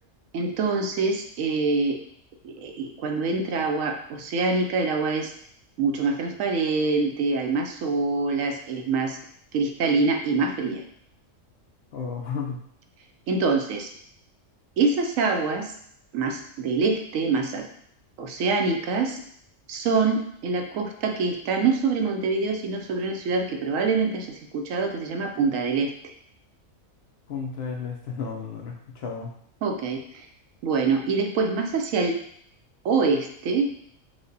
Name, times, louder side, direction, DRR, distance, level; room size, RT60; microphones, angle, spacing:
voice 1, 0.3-2.0 2.4-5.3 5.8-9.2 9.5-10.8 13.3-13.9 14.8-15.7 16.1-17.7 18.2-19.2 19.7-25.9 29.6-30.3 30.6-32.2 32.8-33.8, right 4 dB, 80° right, 4 dB, 1.0 m, -25 dB
voice 2, 11.9-12.6 27.3-29.3, left 5 dB, 60° left, 0 dB, 0.8 m, -33 dB
4.9 x 2.1 x 3.9 m, 0.66 s
omnidirectional pair, 1.4 m